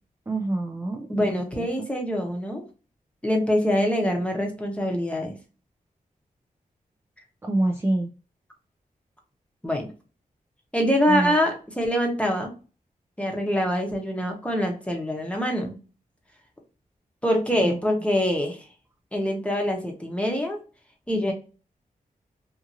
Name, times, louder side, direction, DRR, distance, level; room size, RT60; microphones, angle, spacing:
voice 1, 0.3-1.6 7.4-8.1 11.1-11.3 17.6-17.8, right 1 dB, 15° right, 2 dB, 0.4 m, -26 dB
voice 2, 1.1-2.6 3.2-5.3 9.6-9.9 10.7-12.5 13.2-15.7 17.2-18.7 19.1-20.6 21.1-21.3, equal, 10° left, 1 dB, 0.8 m, -24 dB
2.7 x 2.5 x 2.6 m, 0.35 s
wide cardioid pair, 85°, 15 cm